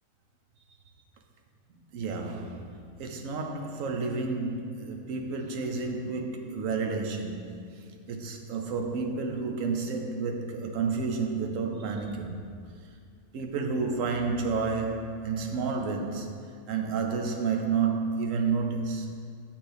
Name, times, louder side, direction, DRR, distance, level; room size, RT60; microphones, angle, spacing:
voice 1, 1.9-12.4 13.3-16.3 16.7-19.1, right 4 dB, 85° right, 3 dB, 1.1 m, -30 dB
8.6 x 5.5 x 3.4 m, 2.2 s
omnidirectional pair, 1.3 m